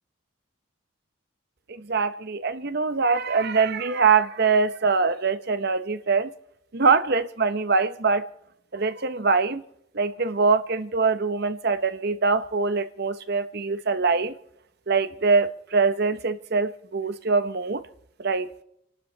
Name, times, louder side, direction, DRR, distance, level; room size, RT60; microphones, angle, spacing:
voice 1, 1.9-6.3 6.7-8.2 8.7-9.6 9.9-14.3 14.9-17.8 18.2-18.5, right 4 dB, 50° right, 0.9 m, -23 dB
29.5 x 12.0 x 3.2 m
head